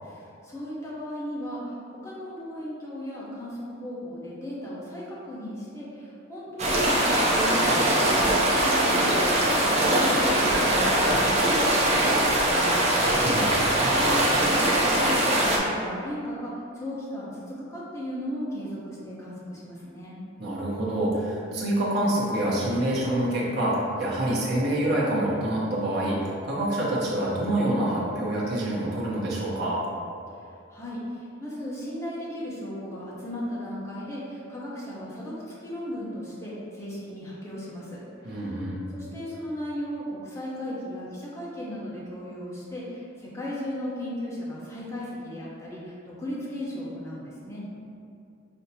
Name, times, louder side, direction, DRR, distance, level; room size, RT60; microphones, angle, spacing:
voice 1, 0.0-13.4 13.8-20.2 30.4-38.4 38.9-47.8, equal, 15° left, -7 dB, 0.8 m, -36 dB
sound 1, 6.6-15.6, right 1 dB, 35° right, 0.5 m, -22 dB
voice 2, 13.1-14.1 20.4-26.2 26.4-29.8 38.2-38.8, right 1 dB, 55° right, -6 dB, 0.9 m, -26 dB
5.2 x 2.8 x 2.8 m, 2.5 s
head